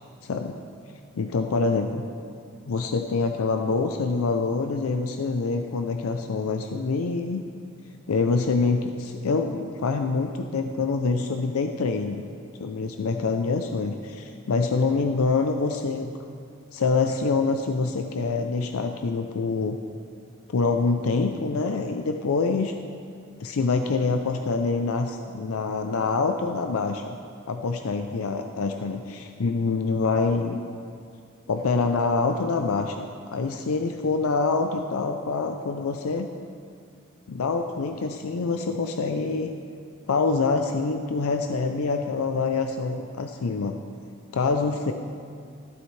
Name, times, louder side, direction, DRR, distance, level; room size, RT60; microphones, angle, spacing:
voice 1, 0.2-0.6 1.2-2.1 2.6-7.4 8.1-12.2 12.6-16.1 16.7-19.8 20.5-22.7 23.4-27.2 27.5-30.6 31.5-36.3 37.3-39.5 40.1-43.8 44.3-44.9, left 4 dB, 85° left, 5 dB, 0.5 m, -25 dB
12.5 x 11.0 x 3.2 m, 2.3 s
head